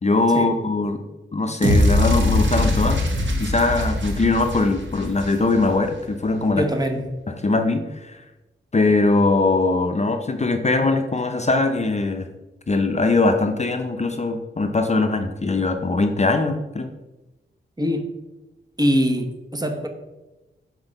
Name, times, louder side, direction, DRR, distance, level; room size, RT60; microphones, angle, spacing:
voice 1, 0.0-1.0 1.3-3.0 3.4-6.6 7.3-8.2 8.7-12.3 12.7-16.9, left 3 dB, 35° left, 6 dB, 0.6 m, -21 dB
sound 1, 1.6-5.9, left 1 dB, 70° right, 1.6 m, -22 dB
voice 2, 6.5-7.1 17.8-18.1 18.8-19.9, equal, 20° right, 5 dB, 0.9 m, -23 dB
5.9 x 4.4 x 5.3 m, 1.0 s
wide cardioid pair, 75°, 20 cm